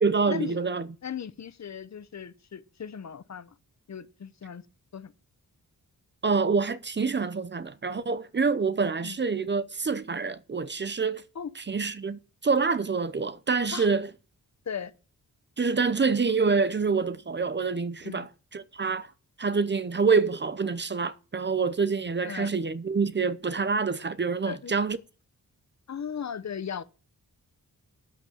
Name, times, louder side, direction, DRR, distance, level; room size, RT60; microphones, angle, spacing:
voice 1, 0.0-0.9 6.2-11.2 11.6-14.1 15.6-19.1 19.4-25.0, right 4 dB, 30° right, 0.7 m, -26 dB
voice 2, 1.0-3.5 3.9-4.6 4.9-5.1 9.0-9.2 11.3-11.5 13.7-13.9 14.7-14.9 18.0-18.3 22.2-22.5 24.5-24.7 25.9-26.8, left 7 dB, 50° left, 0.9 m, -37 dB
9.9 x 8.2 x 7.1 m
wide cardioid pair, 140°, 34 cm